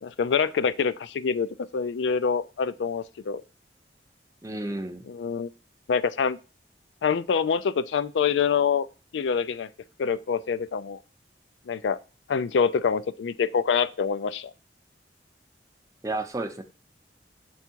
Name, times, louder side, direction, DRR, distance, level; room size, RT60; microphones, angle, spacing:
voice 1, 0.0-1.5 1.7-3.4 5.1-5.5 5.9-6.4 7.0-8.9 9.1-9.7 10.0-11.0 11.7-12.0 12.3-14.5, left 6 dB, 80° left, 0.4 m, -25 dB
voice 2, 4.4-5.1 16.0-16.6, right 2 dB, 20° right, 0.6 m, -31 dB
7.1 x 3.5 x 4.5 m
head